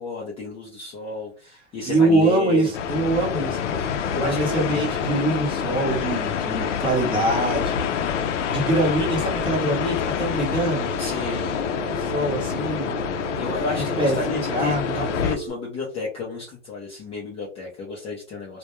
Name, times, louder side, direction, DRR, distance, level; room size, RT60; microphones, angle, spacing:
voice 1, 0.0-2.7 3.8-4.6 6.5-6.9 11.0-11.5 13.4-18.6, left 4 dB, 15° left, -2 dB, 0.4 m, -32 dB
voice 2, 1.8-3.8 4.1-7.9 8.1-10.9 11.9-13.0 14.0-15.0, right 2 dB, 15° right, 0 dB, 0.8 m, -24 dB
sound 1, 2.7-15.4, left 7 dB, 85° left, 0.5 m, -27 dB
Telephone, 10.5-15.5, right 10 dB, 55° right, 0.8 m, -37 dB
2.2 x 2.2 x 2.9 m, 0.37 s
hypercardioid pair, 125°, 35 cm